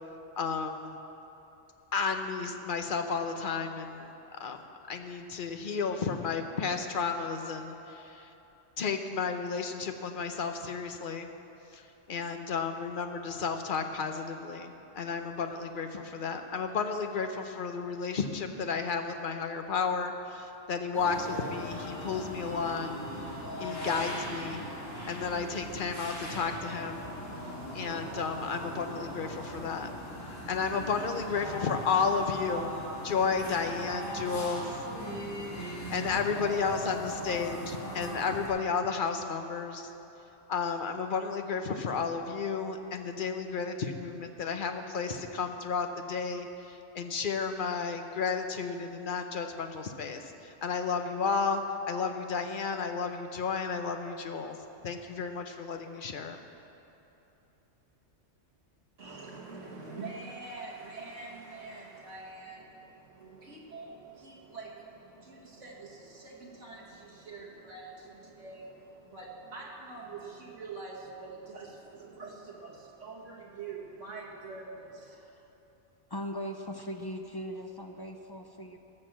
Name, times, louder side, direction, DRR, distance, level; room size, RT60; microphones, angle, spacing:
voice 1, 0.4-1.0 1.9-8.3 8.8-11.3 11.7-23.0 23.6-24.6 25.1-27.1 27.7-29.9 30.5-34.8 35.9-39.9 40.5-54.6 54.8-56.4, left 5 dB, 45° left, 6 dB, 0.9 m, -32 dB
sound 1, 20.9-38.5, equal, 85° left, 3.3 m, -39 dB
voice 2, 59.0-75.2, right 3 dB, 75° right, -2 dB, 2.2 m, -45 dB
voice 3, 75.1-75.5 76.1-78.8, equal, 25° left, 4 dB, 0.6 m, -39 dB
17.0 x 6.6 x 7.5 m, 3.0 s
omnidirectional pair, 1.3 m